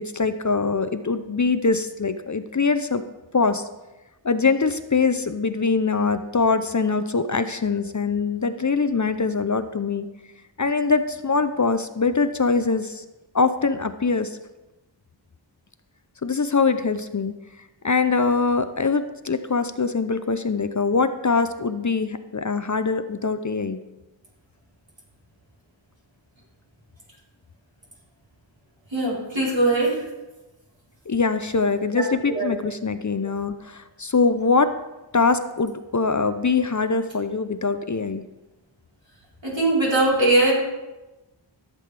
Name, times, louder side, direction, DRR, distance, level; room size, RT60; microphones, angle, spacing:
voice 1, 0.0-3.0 3.3-3.7 4.2-10.1 10.6-13.0 13.3-14.4 16.2-17.4 17.8-23.8 31.1-34.7 35.1-38.3, left 4 dB, 40° left, 10 dB, 0.6 m, -23 dB
voice 2, 28.9-30.0 31.9-32.5 39.4-40.5, right 2 dB, 75° right, -6 dB, 4.1 m, -21 dB
14.5 x 7.6 x 3.4 m, 1.1 s
wide cardioid pair, 40°, 45 cm